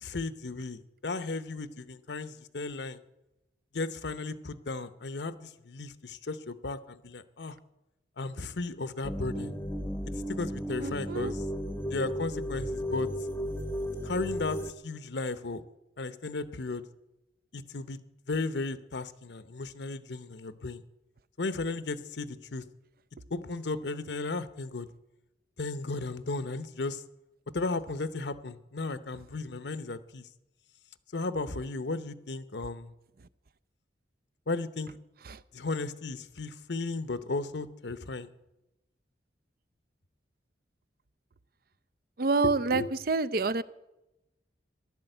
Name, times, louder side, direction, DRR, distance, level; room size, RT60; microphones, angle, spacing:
voice 1, 0.0-3.0 3.7-7.5 8.2-9.5 10.3-11.4 11.9-13.1 14.0-15.6 16.0-16.8 17.5-18.0 18.3-20.8 21.4-22.6 23.3-24.9 25.6-27.0 27.5-30.3 31.1-32.9 34.5-34.9 35.5-38.3 42.7-42.9, left 3 dB, 70° left, 13 dB, 0.9 m, -35 dB
sound 1, 9.0-14.7, equal, 15° left, 0.8 m, -34 dB
voice 2, 10.8-11.3 35.3-35.4 42.2-43.6, right 3 dB, 55° right, 15 dB, 0.5 m, -28 dB
15.5 x 11.5 x 7.9 m, 0.95 s
head